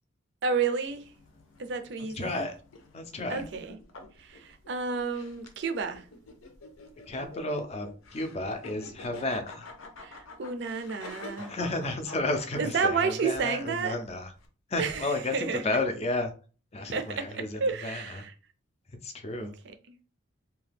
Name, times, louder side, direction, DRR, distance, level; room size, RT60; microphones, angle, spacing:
voice 1, 0.4-1.1 1.6-2.5 3.3-3.8 4.2-6.1 10.0-11.5 12.6-14.0 14.8-15.7 16.9-18.3 19.4-19.9, right 5 dB, 60° right, 0.4 m, -31 dB
sound 1, 0.9-14.5, left 2 dB, 85° left, 0.6 m, -48 dB
voice 2, 2.1-2.5 2.9-3.4 7.1-9.7 11.4-14.3 14.7-16.3 16.7-18.2 19.0-19.5, left 2 dB, 30° left, 0.4 m, -32 dB
2.8 x 2.3 x 3.3 m
head